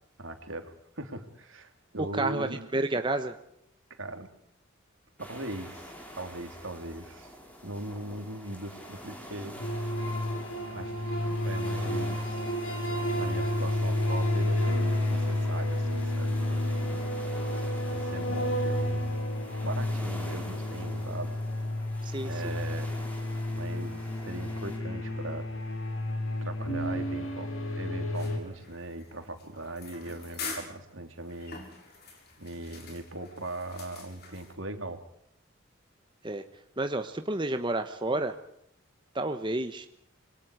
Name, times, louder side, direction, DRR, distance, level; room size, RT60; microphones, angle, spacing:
voice 1, 0.2-2.7 3.9-4.3 5.2-7.3 7.6-9.6 10.7-12.4 13.2-17.1 17.9-19.2 19.6-21.4 22.2-23.0 23.5-25.5 26.4-31.6 32.4-35.0, right 2 dB, 70° right, 7 dB, 3.2 m, -40 dB
voice 2, 2.0-3.3 22.0-22.6 36.2-36.4 36.8-38.3 39.1-39.9, right 2 dB, 25° right, 7 dB, 1.1 m, -30 dB
sound 1, 5.2-24.8, equal, 5° left, 5.6 m, -46 dB
sound 2, 9.6-28.4, left 1 dB, 90° left, 6.2 m, -31 dB
sound 3, 28.1-34.5, left 4 dB, 50° left, 6.5 m, -45 dB
27.0 x 23.0 x 4.9 m, 0.74 s
head